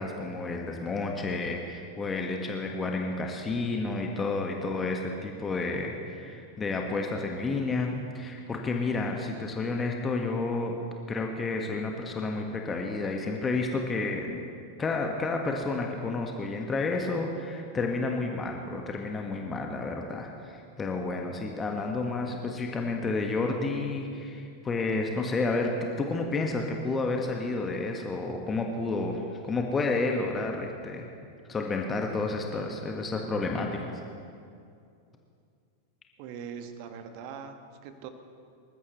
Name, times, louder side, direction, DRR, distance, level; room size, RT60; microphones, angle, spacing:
voice 1, 0.0-10.8 11.1-14.4 14.8-25.7 26.0-31.1 31.5-33.9, left 3 dB, 20° left, 2 dB, 1.6 m, -30 dB
voice 2, 36.2-38.1, right 7 dB, 45° right, 7 dB, 1.6 m, -41 dB
27.0 x 15.0 x 3.2 m, 2.4 s
figure-of-eight pair, 90°, 0 cm